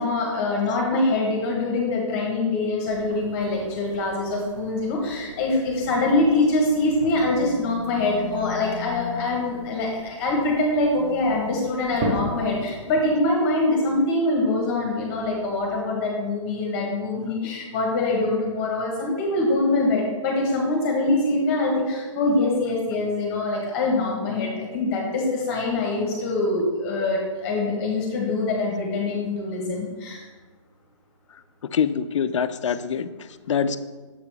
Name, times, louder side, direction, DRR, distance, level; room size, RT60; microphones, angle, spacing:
voice 1, 0.0-30.2, left 2 dB, 25° left, 0 dB, 1.1 m, -24 dB
sound 1, 2.8-13.0, right 2 dB, 25° right, 0.7 m, -38 dB
voice 2, 7.4-9.6 31.7-33.8, left 7 dB, 65° left, 13 dB, 0.4 m, -28 dB
7.0 x 4.9 x 3.4 m, 1.3 s
hypercardioid pair, 150°, 17 cm